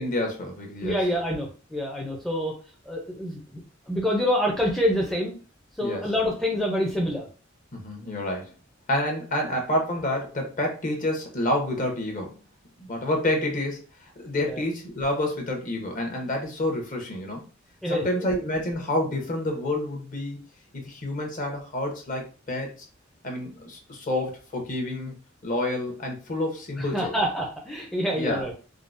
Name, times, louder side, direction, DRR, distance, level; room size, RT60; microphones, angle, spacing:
voice 1, 0.0-1.0 5.8-6.1 7.7-8.5 8.9-12.4 12.8-17.4 17.9-20.4 20.7-22.8 23.2-25.1 25.4-27.2 28.1-28.5, left 1 dB, 45° left, 1 dB, 0.8 m, -28 dB
voice 2, 0.8-2.6 2.9-3.4 3.9-5.4 5.8-7.3 14.4-14.6 17.8-18.0 26.8-28.5, equal, ahead, -1 dB, 0.5 m, -26 dB
3.6 x 2.0 x 2.5 m, 0.36 s
head